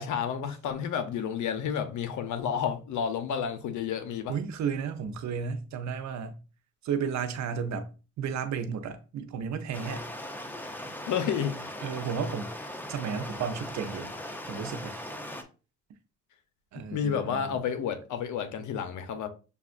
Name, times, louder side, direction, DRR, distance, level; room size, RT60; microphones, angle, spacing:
voice 1, 0.0-4.4 11.0-11.6 16.9-19.3, left 7 dB, 75° left, 0.8 m, -30 dB
voice 2, 4.3-6.4 6.8-7.9 8.2-10.1 11.8-12.5 12.9-14.1 14.5-15.0 16.7-17.5, right 6 dB, 65° right, 0.7 m, -33 dB
Stream, 9.7-15.4, left 1 dB, 5° left, 0.6 m, -39 dB
6.8 x 2.4 x 2.5 m
cardioid pair, 90°, 30 cm